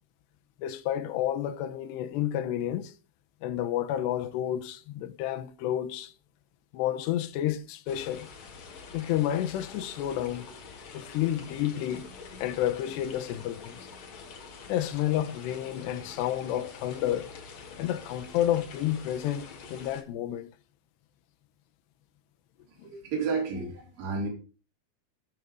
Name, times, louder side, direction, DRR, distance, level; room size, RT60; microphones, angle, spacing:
voice 1, 0.6-2.9 3.4-6.1 6.7-8.3 8.9-10.5 10.9-12.1 12.4-13.9 14.7-17.3 17.8-20.5 22.8-22.9, left 12 dB, 75° left, 2.9 m, -30 dB
sound 1, 7.9-20.0, left 5 dB, 50° left, 2.6 m, -46 dB
voice 2, 22.7-24.3, right 4 dB, 50° right, 5.5 m, -32 dB
12.5 x 9.4 x 5.3 m
omnidirectional pair, 5.1 m